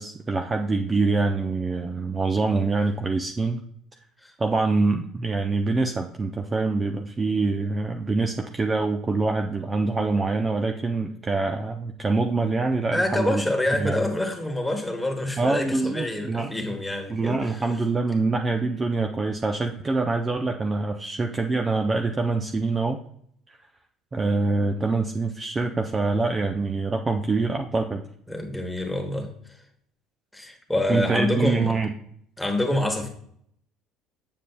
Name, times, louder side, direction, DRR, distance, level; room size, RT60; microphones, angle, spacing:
voice 1, 0.0-3.6 4.4-13.4 13.8-14.0 15.4-16.5 17.1-23.0 23.5-23.6 24.1-28.0 30.9-31.9, right 3 dB, 25° right, 0.5 m, -25 dB
voice 2, 12.9-17.7 28.3-29.3 30.3-31.7 32.4-33.1, left 1 dB, 5° left, 1.3 m, -27 dB
7.3 x 6.8 x 2.3 m
supercardioid pair, 105°, 0 cm